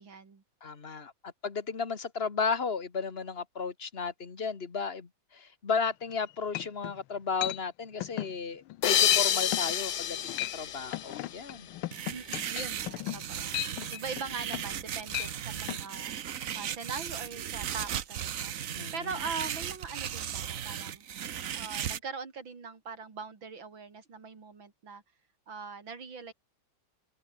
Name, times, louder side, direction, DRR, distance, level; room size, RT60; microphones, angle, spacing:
voice 1, 0.0-0.4 12.1-18.5 18.9-21.0 21.5-25.0 25.5-26.3, right 5 dB, 70° right, 3.8 m, -41 dB
voice 2, 0.6-10.2 10.5-11.7 18.8-19.1, left 5 dB, 30° left, 1.7 m, -34 dB
sound 1, 6.1-6.2 6.5-7.0 7.4-7.6 8.0-8.3 8.7-8.8 9.1-9.3 9.5-9.7 10.2-10.6 10.9-14.8 15.1-15.3 15.7-15.8, left 16 dB, 85° left, 1.5 m, -35 dB
sound 2, 8.8-11.9, left 9 dB, 55° left, 0.8 m, -29 dB
sound 3, 11.9-22.0, right 9 dB, 50° right, 1.1 m, -36 dB
open air
omnidirectional pair, 2.2 m